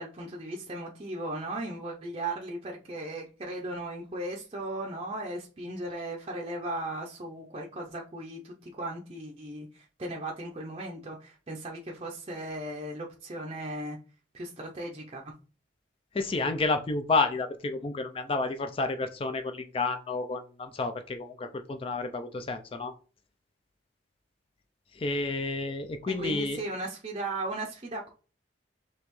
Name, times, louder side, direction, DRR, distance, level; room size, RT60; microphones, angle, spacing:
voice 1, 0.0-14.0 14.3-15.3 26.1-28.1, right 1 dB, 30° right, -1 dB, 0.5 m, -37 dB
voice 2, 16.1-22.9 24.9-26.6, left 3 dB, 30° left, 7 dB, 0.4 m, -30 dB
5.3 x 2.9 x 3.0 m, 0.37 s
head